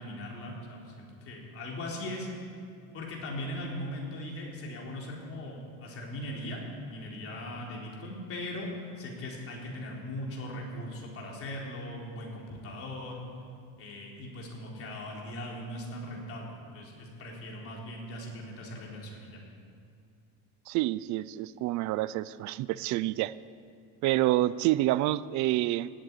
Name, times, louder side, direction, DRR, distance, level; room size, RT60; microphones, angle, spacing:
voice 1, 0.0-2.3 2.9-6.6 6.9-8.7 9.0-13.2 13.8-19.4, left 1 dB, 35° left, -2 dB, 3.8 m, -39 dB
voice 2, 20.7-23.3 24.0-25.9, right 16 dB, 50° right, 18 dB, 0.5 m, -28 dB
17.0 x 8.7 x 9.7 m, 2.3 s
cardioid pair, 155°, 37 cm